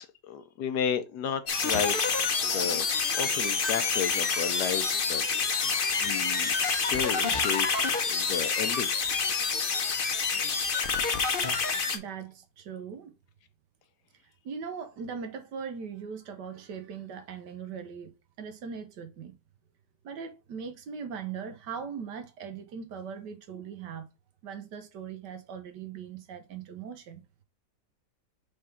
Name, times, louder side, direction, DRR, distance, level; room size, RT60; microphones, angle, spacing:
voice 1, 0.0-2.2 2.4-2.9 3.1-8.9, left 7 dB, 70° left, 1.3 m, -33 dB
sound 1, 1.5-12.0, left 5 dB, 40° left, 0.8 m, -27 dB
voice 2, 11.9-13.1 14.4-19.3 20.0-24.1 24.4-27.2, right 6 dB, 75° right, 1.6 m, -40 dB
5.1 x 3.6 x 5.6 m
omnidirectional pair, 1.8 m